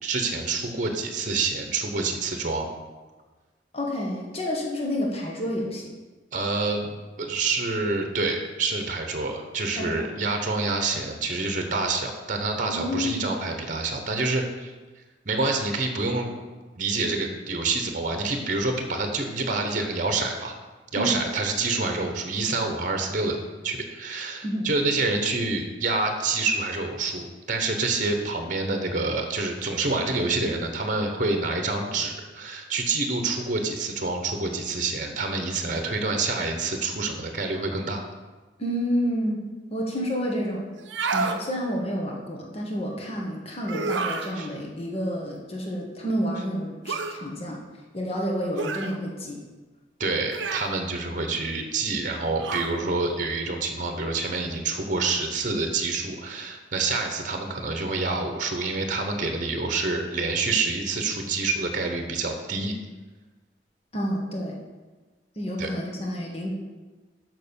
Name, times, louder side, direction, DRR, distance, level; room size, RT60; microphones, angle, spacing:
voice 1, 0.0-2.7 6.3-14.7 15.2-16.3 16.7-20.5 20.9-23.4 23.6-38.0 41.2-41.3 44.3-44.5 50.0-62.7 65.6-65.7, right 3 dB, 45° right, 4 dB, 1.0 m, -27 dB
voice 2, 3.7-5.9 9.7-10.1 12.7-13.4 21.0-21.1 24.4-24.7 38.6-40.8 41.1-47.6 47.9-49.4 63.9-64.6 65.3-66.5, equal, 35° left, -1 dB, 1.5 m, -29 dB
sound 1, 40.8-41.4 43.6-44.3 46.9-47.2 48.6-48.9 50.3-50.8 52.4-52.8, right 4 dB, 90° right, 0.7 m, -29 dB
6.7 x 6.1 x 6.9 m, 1.3 s
head